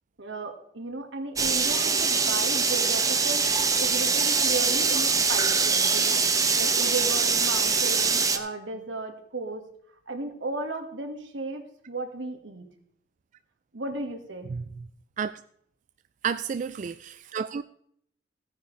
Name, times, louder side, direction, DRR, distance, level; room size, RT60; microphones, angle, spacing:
voice 1, 0.2-9.6 10.1-12.7 13.7-14.5, right 2 dB, 80° right, 5 dB, 1.8 m, -35 dB
sound 1, 1.4-8.4, right 5 dB, 20° right, 0.9 m, -23 dB
voice 2, 16.2-17.6, right 6 dB, 40° right, 12 dB, 0.3 m, -31 dB
15.5 x 9.5 x 3.3 m, 0.68 s
head